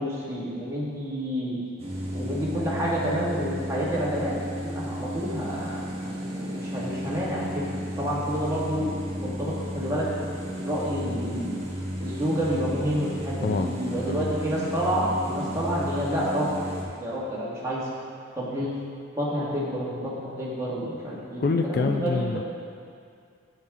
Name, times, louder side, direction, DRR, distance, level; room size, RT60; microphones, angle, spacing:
voice 1, 0.0-1.6 2.1-5.8 6.3-7.7 8.0-10.1 10.6-11.5 12.0-16.5 17.0-17.9 18.3-18.7 19.1-22.2, equal, 15° right, -7 dB, 1.7 m, -29 dB
sound 1, 1.8-16.8, equal, 30° right, 1.4 m, -33 dB
voice 2, 13.4-14.3 15.5-15.6 21.4-22.4, left 4 dB, 50° left, 5 dB, 0.3 m, -27 dB
8.5 x 8.1 x 3.6 m, 2.3 s
head